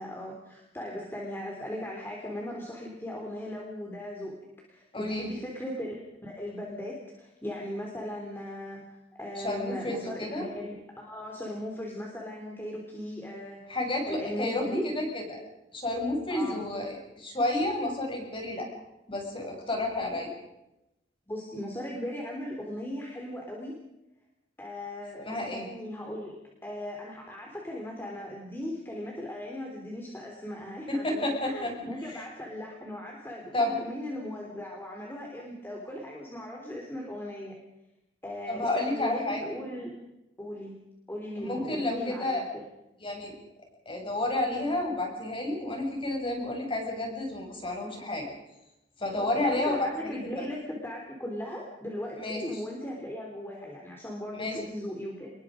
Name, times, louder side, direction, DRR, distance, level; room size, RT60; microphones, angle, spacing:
voice 1, 0.0-4.3 4.7-13.7 14.1-14.8 16.3-16.6 21.3-23.7 24.6-37.5 38.2-39.9 40.4-40.8 41.1-42.7 49.2-55.3, left 1 dB, 10° left, -1 dB, 3.6 m, -38 dB
voice 2, 4.9-5.3 9.4-10.5 13.7-14.6 14.9-15.4 15.7-18.7 19.1-20.3 25.3-25.7 30.9-31.7 32.1-32.2 33.5-33.7 38.5-39.4 41.4-42.4 43.0-43.3 43.9-48.3 49.0-50.4 52.2-52.4 54.3-54.6, left 1 dB, 30° left, 1 dB, 7.2 m, -31 dB
27.0 x 21.5 x 5.2 m, 0.90 s
head